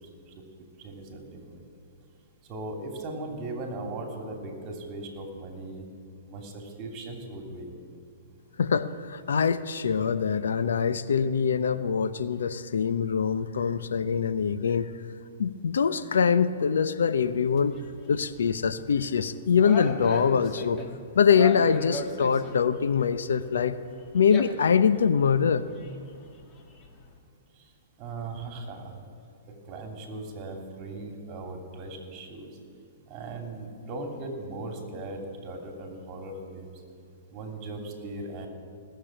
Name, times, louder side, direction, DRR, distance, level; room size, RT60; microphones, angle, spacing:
voice 1, 0.8-1.6 2.5-5.8 6.3-7.7 28.0-29.0 29.7-32.5 33.1-36.7 37.3-38.5, right 2 dB, 30° right, 3 dB, 2.7 m, -38 dB
voice 2, 8.6-14.9 15.4-17.7 18.1-20.8 21.1-23.8 24.1-25.6, left 6 dB, 85° left, 13 dB, 0.7 m, -24 dB
sound 1, 17.2-27.2, left 3 dB, 30° left, 1.5 m, -40 dB
18.0 x 6.9 x 8.8 m, 2.5 s
hypercardioid pair, 140°, 0 cm